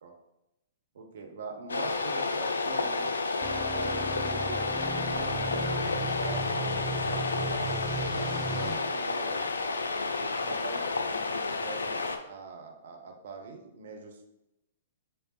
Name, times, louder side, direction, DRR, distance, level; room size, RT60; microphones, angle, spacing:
voice 1, 0.9-3.1 3.7-9.5 10.1-14.2, right 4 dB, 60° right, 3 dB, 0.6 m, -43 dB
sound 1, 1.7-12.2, left 3 dB, 75° left, 0.3 m, -31 dB
sound 2, 3.4-8.8, right 2 dB, 5° right, 0.8 m, -36 dB
4.3 x 3.3 x 2.3 m, 0.88 s
figure-of-eight pair, 110°, 0 cm